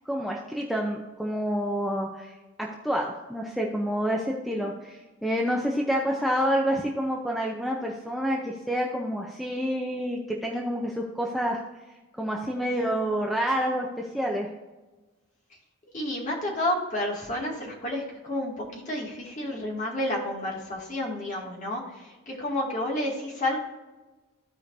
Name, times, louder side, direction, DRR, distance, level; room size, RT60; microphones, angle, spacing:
voice 1, 0.1-2.3 2.6-11.6 12.2-14.5, equal, ahead, -2 dB, 0.7 m, -28 dB
voice 2, 15.9-23.6, left 1 dB, 35° left, -2 dB, 2.2 m, -30 dB
15.0 x 5.0 x 2.7 m, 1.2 s
head